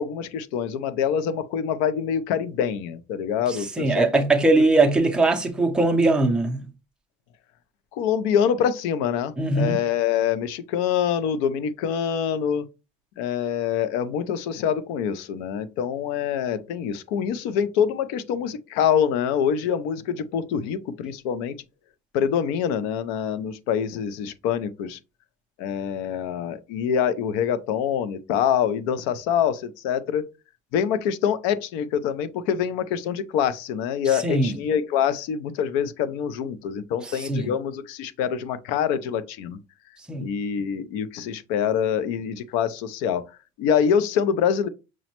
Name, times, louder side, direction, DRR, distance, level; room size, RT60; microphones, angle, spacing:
voice 1, 0.0-4.2 7.9-12.6 13.2-21.5 22.1-25.0 25.6-30.2 30.7-39.6 40.2-43.2 43.6-44.7, left 8 dB, 75° left, 0.5 m, -25 dB
voice 2, 3.8-6.7 9.4-9.8 34.2-34.6 37.3-37.5 40.1-40.4, right 2 dB, 5° right, 0.4 m, -20 dB
6.0 x 2.1 x 2.9 m
cardioid pair, 175°, 17 cm